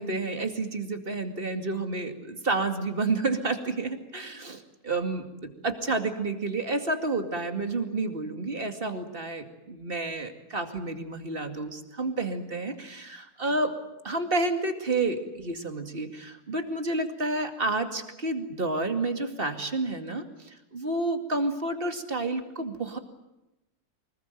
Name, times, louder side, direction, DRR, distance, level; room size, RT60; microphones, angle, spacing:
voice 1, 0.0-5.2 5.6-13.8 14.0-23.0, right 2 dB, 35° right, 6 dB, 2.5 m, -30 dB
25.0 x 21.0 x 9.2 m, 0.95 s
omnidirectional pair, 1.7 m